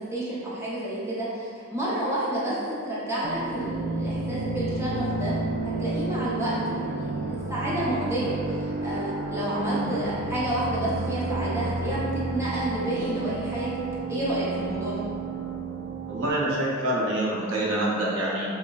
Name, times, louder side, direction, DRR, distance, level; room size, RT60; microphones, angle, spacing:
voice 1, 0.0-5.4 5.6-13.7 14.1-15.0, right 1 dB, 15° right, -9 dB, 0.7 m, -30 dB
sound 1, 3.2-16.3, right 3 dB, 50° right, 0.3 m, -31 dB
voice 2, 9.5-9.9 16.1-18.5, right 1 dB, 70° right, -5 dB, 0.7 m, -26 dB
5.5 x 2.2 x 2.4 m, 2.3 s
head